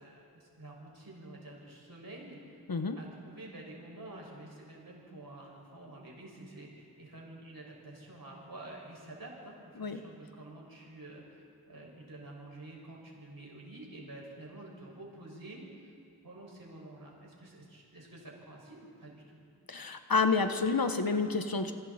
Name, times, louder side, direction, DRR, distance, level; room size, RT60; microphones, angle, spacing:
voice 1, 0.0-2.6 2.9-15.9 16.2-19.4, right 2 dB, 65° right, -3 dB, 6.4 m, -49 dB
voice 2, 19.7-21.7, left 4 dB, 65° left, 7 dB, 1.3 m, -29 dB
27.0 x 23.5 x 4.4 m, 2.4 s
wide cardioid pair, 60°, 38 cm